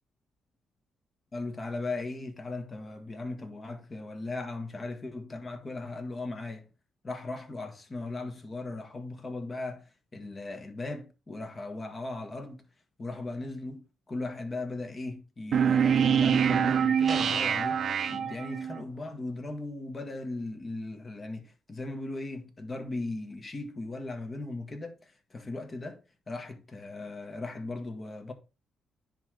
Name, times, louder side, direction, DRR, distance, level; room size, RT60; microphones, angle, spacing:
voice 1, 1.3-6.7 7.0-9.8 10.1-12.6 13.0-26.0 26.3-28.3, left 2 dB, 30° left, 1.5 m, -38 dB
sound 1, 15.5-18.8, right 7 dB, 55° right, 0.6 m, -25 dB
sound 2, 17.1-19.4, right 3 dB, 25° right, 1.2 m, -44 dB
10.0 x 3.4 x 3.8 m
cardioid pair, 90°, 0 cm